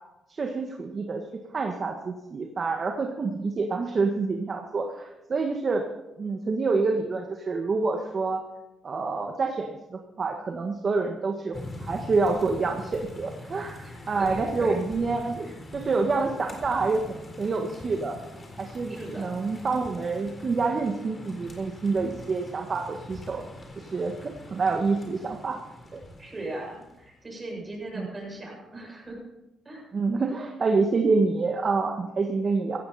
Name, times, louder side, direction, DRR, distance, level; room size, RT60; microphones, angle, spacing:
voice 1, 0.3-5.8 6.2-8.4 8.8-17.0 17.4-18.2 18.6-23.4 23.8-25.6 25.9-26.0 28.0-28.1 29.9-32.8, right 4 dB, 40° right, 3 dB, 1.6 m, -27 dB
sound 1, 11.5-27.1, left 1 dB, 30° left, 4.2 m, -43 dB
voice 2, 13.8-14.8 15.4-15.5 18.9-19.3 26.2-29.2 29.6-29.9 30.2-30.3, right 1 dB, 25° right, -1 dB, 7.3 m, -38 dB
16.5 x 14.5 x 4.3 m, 0.97 s
cardioid pair, 90°, 0 cm